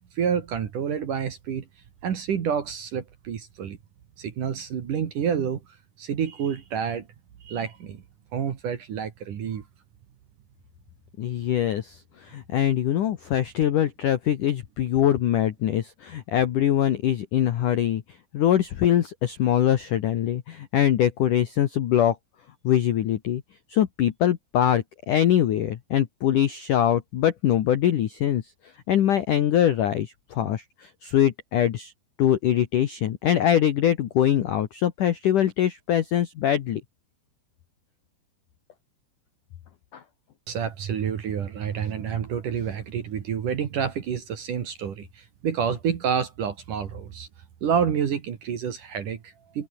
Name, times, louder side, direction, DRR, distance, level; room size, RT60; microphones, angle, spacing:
voice 1, 0.1-1.6 2.0-3.8 4.2-5.6 6.0-7.1 7.4-8.0 8.3-9.6 40.5-47.3 47.6-49.7, right 7 dB, 50° right, 2.8 m, -28 dB
voice 2, 11.2-18.0 18.3-22.2 22.6-23.4 23.7-28.4 28.9-31.9 32.2-36.8 39.9-40.0, left 11 dB, 85° left, 1.8 m, -23 dB
open air
omnidirectional pair, 5.9 m